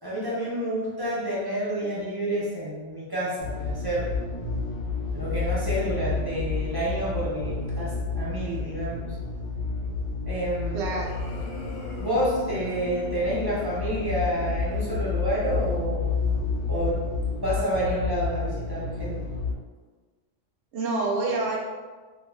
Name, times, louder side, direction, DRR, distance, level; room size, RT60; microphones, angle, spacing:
voice 1, 0.0-4.1 5.1-9.2 10.3-10.9 12.0-16.1 16.7-17.0 17.4-19.3, right 1 dB, 25° right, -7 dB, 0.6 m, -29 dB
sound 1, 3.4-19.5, left 4 dB, 65° left, 0.8 m, -30 dB
voice 2, 10.7-11.1 20.7-21.6, right 3 dB, 70° right, -3 dB, 0.8 m, -27 dB
sound 2, 11.0-13.1, left 3 dB, 90° left, 1.1 m, -44 dB
2.5 x 2.3 x 3.2 m, 1.3 s
omnidirectional pair, 1.3 m